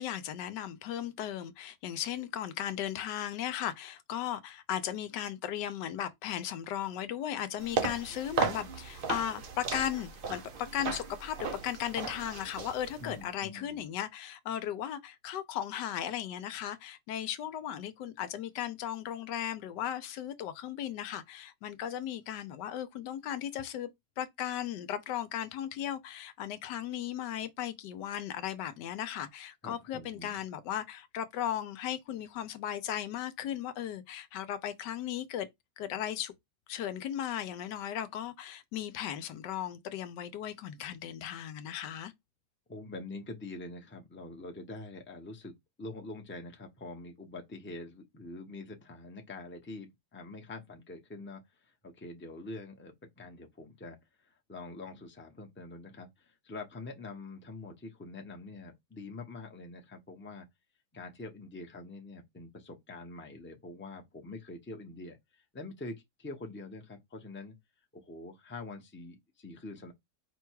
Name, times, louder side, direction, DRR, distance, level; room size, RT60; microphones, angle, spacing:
voice 1, 0.0-23.9 24.2-35.5 35.8-36.3 36.7-42.1, left 10 dB, 85° left, 1.3 m, -36 dB
sound 1, 7.6-13.2, right 5 dB, 55° right, 0.6 m, -36 dB
voice 2, 13.0-13.9 29.6-30.4 42.7-60.5 60.9-67.5 67.9-69.9, left 2 dB, 10° left, 0.6 m, -45 dB
5.1 x 2.3 x 4.5 m
omnidirectional pair, 1.8 m